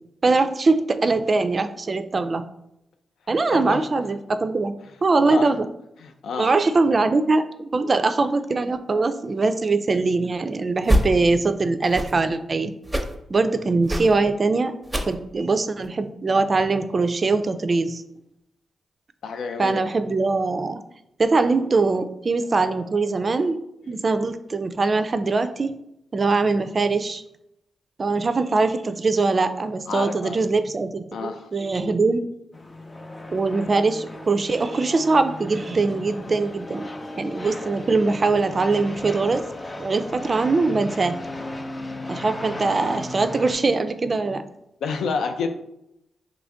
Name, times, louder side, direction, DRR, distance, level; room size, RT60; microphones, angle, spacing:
voice 1, 0.2-2.4 3.3-4.7 5.0-5.7 6.4-12.7 13.3-14.7 15.1-18.0 19.6-20.8 21.2-23.6 23.9-25.7 26.1-27.2 28.0-32.3 33.3-36.9 37.2-39.4 39.8-41.2 42.1-44.5, right 3 dB, 45° right, 10 dB, 0.3 m, -22 dB
voice 2, 3.5-3.9 5.2-5.5 6.0-6.6 19.2-19.8 23.8-23.9 29.9-30.4 31.1-31.5 41.4-41.5 44.8-45.5, left 5 dB, 80° left, 6 dB, 0.4 m, -29 dB
sound 1, 10.8-11.1 11.8-12.2 12.8-13.2 13.8-14.2 14.8-15.2 15.8-15.9, equal, 10° right, 0.7 m, -24 dB
sound 2, 32.5-43.6, left 1 dB, 35° left, 0.5 m, -36 dB
3.1 x 2.5 x 3.4 m, 0.81 s
supercardioid pair, 45°, 0 cm